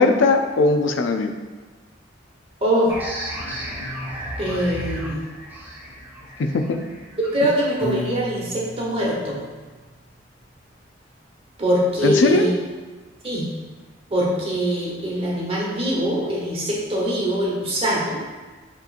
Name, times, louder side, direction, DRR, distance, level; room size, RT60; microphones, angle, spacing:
voice 1, 0.0-1.3 6.4-6.8 12.0-12.5, left 3 dB, 85° left, 6 dB, 0.4 m, -18 dB
voice 2, 2.6-2.9 4.4-5.2 7.2-9.4 11.6-12.5 13.2-13.5 14.1-18.2, equal, 30° right, -4 dB, 1.0 m, -23 dB
sound 1, 2.9-8.2, equal, 10° right, 0.7 m, -34 dB
Piano, 7.8-10.0, left 2 dB, 40° left, 1.1 m, -34 dB
6.8 x 3.0 x 2.5 m, 1.3 s
head